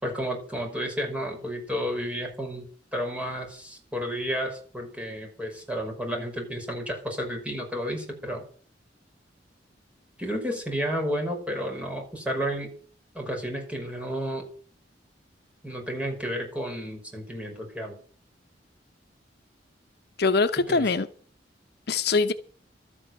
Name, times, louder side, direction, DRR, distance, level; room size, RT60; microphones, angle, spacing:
voice 1, 0.0-2.7 2.9-8.4 10.2-12.7 13.1-14.5 15.6-17.9 20.7-20.9, equal, 5° right, 5.5 m, -31 dB
voice 2, 20.2-21.1 21.9-22.3, left 4 dB, 65° left, 0.8 m, -23 dB
13.0 x 8.6 x 7.8 m
head